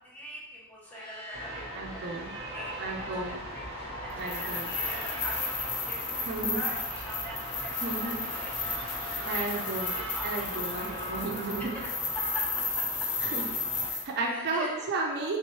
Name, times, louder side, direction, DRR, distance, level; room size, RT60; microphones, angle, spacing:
voice 1, 0.0-11.2 11.6-13.1 14.2-14.9, equal, 10° left, -5 dB, 0.8 m, -44 dB
sound 1, 0.8-14.5, equal, 25° left, 1.3 m, -42 dB
sound 2, 1.3-13.9, right 1 dB, 25° right, 0.8 m, -41 dB
voice 2, 1.7-2.3 2.8-3.4 4.2-4.7 6.3-6.6 7.8-8.2 9.2-10.0 10.2-11.7 13.2-13.4 13.9-15.4, right 3 dB, 50° right, 0 dB, 0.5 m, -33 dB
sound 3, 4.2-14.0, left 4 dB, 50° left, 0.6 m, -34 dB
3.4 x 3.0 x 3.0 m, 1.1 s
head